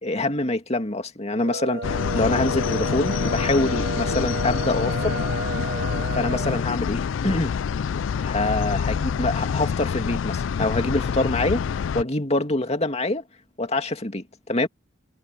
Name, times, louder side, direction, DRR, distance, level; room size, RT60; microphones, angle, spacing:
voice 1, 0.0-5.2 6.1-7.5 8.2-11.6 11.9-13.2 13.6-14.7, left 2 dB, 35° left, 2.3 m, -25 dB
sound 1, 1.3-6.6, right 2 dB, 55° right, 1.6 m, -32 dB
sound 2, 1.8-12.0, left 6 dB, 75° left, 0.4 m, -26 dB
head